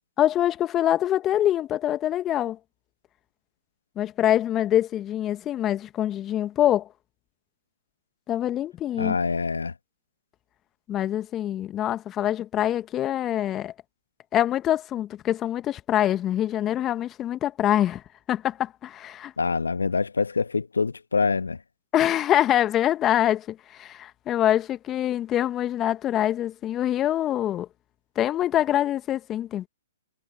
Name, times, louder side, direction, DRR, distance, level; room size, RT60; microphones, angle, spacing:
voice 1, 0.2-2.6 4.0-6.9 8.3-9.2 10.9-13.7 14.3-18.0 18.3-19.3 21.9-27.7 28.1-29.7, left 12 dB, 20° left, 1.5 m, -24 dB
voice 2, 9.0-9.7 19.4-21.6, left 4 dB, 80° left, 1.4 m, -25 dB
figure-of-eight pair, 125°, 0 cm